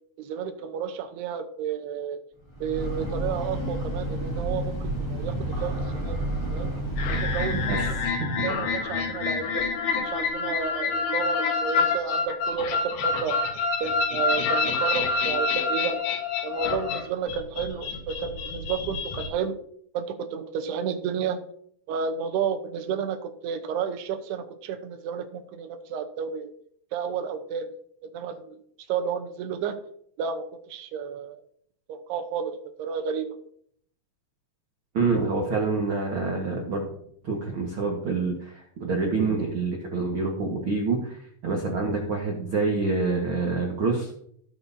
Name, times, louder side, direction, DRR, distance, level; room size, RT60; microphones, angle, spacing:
voice 1, 0.2-2.2 2.6-6.2 6.5-6.7 7.1-8.0 8.4-9.7 10.0-13.4 13.8-16.0 16.4-19.6 19.9-21.4 21.9-26.5 26.9-27.7 28.0-28.6 28.9-29.8 30.2-31.4 31.9-33.3, right 7 dB, 75° right, 7 dB, 2.9 m, -31 dB
Breathing / Train, 2.4-8.2, right 1 dB, 10° left, 2.1 m, -30 dB
sound 1, 7.0-19.3, left 4 dB, 70° left, 3.4 m, -27 dB
voice 2, 34.9-36.9 37.2-44.1, right 3 dB, 60° right, 0 dB, 1.3 m, -27 dB
17.5 x 7.8 x 2.8 m, 0.65 s
omnidirectional pair, 4.9 m